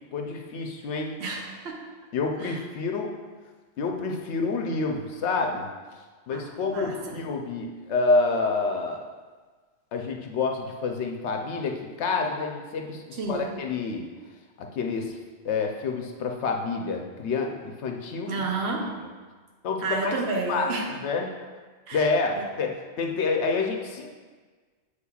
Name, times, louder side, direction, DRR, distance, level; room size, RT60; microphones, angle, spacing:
voice 1, 0.1-1.1 2.1-3.1 3.8-5.7 6.3-9.0 9.9-14.0 14.6-15.2 15.4-18.3 18.8-18.9 19.6-20.2 20.5-20.7 21.0-21.3 21.9-24.1, left 4 dB, 90° left, 1.0 m, -28 dB
voice 2, 1.2-1.9 2.4-2.6 6.3-7.2 13.2-13.5 18.3-19.1 19.8-20.9 21.9-22.1 22.4-22.5, right 3 dB, 75° right, 1.1 m, -31 dB
8.3 x 5.0 x 2.3 m
omnidirectional pair, 1.1 m